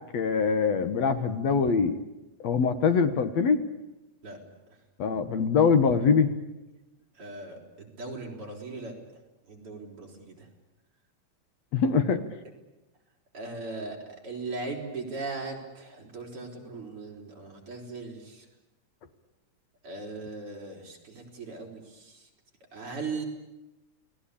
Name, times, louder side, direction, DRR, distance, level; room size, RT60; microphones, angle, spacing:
voice 1, 0.1-1.9 2.4-3.6 5.0-6.3 11.7-12.2, left 5 dB, 65° left, 10 dB, 2.5 m, -23 dB
voice 2, 7.2-8.9 9.5-10.4 13.3-14.0 14.2-18.4 19.8-22.2 22.7-23.3, right 3 dB, 45° right, 0 dB, 5.7 m, -38 dB
30.0 x 20.0 x 8.6 m, 1.0 s
omnidirectional pair, 3.3 m